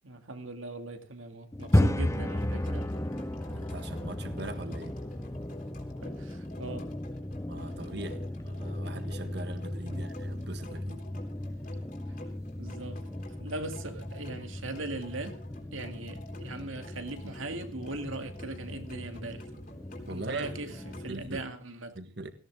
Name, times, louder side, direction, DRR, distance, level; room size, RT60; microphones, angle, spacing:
voice 1, 0.0-2.9 6.0-6.9 9.9-10.1 12.1-12.2 12.6-15.4 15.7-19.7 20.1-22.0, right 2 dB, 85° right, 2.4 m, -40 dB
sound 1, 1.5-21.4, left 1 dB, 15° left, 0.7 m, -35 dB
sound 2, 1.6-21.1, left 1 dB, 45° left, 3.7 m, -50 dB
voice 2, 3.5-5.0 7.5-11.0 20.1-20.7 21.1-21.4 21.9-22.3, right 2 dB, 55° right, 1.6 m, -41 dB
18.0 x 17.0 x 3.8 m
head